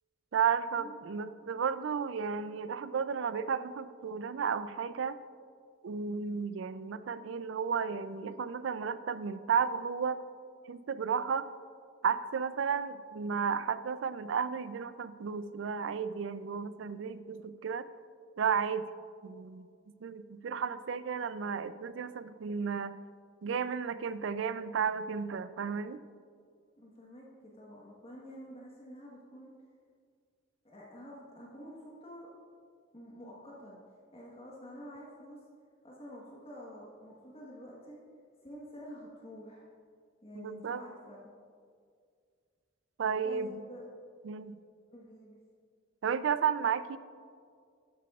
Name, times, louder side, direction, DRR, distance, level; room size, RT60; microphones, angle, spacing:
voice 1, 0.3-5.2 5.8-10.2 10.7-11.5 12.0-17.9 18.4-18.9 19.2-19.7 20.0-23.0 23.4-26.0 40.3-40.8 43.0-43.5 44.2-44.6 46.0-47.0, right 6 dB, 75° right, 14 dB, 0.4 m, -33 dB
voice 2, 26.7-29.5 30.6-32.3 32.9-33.8 34.1-35.4 35.8-38.0 38.4-39.7 40.2-41.3 43.2-43.8 44.9-45.4, equal, 30° left, -4 dB, 1.2 m, -49 dB
12.5 x 9.4 x 2.4 m, 2.1 s
head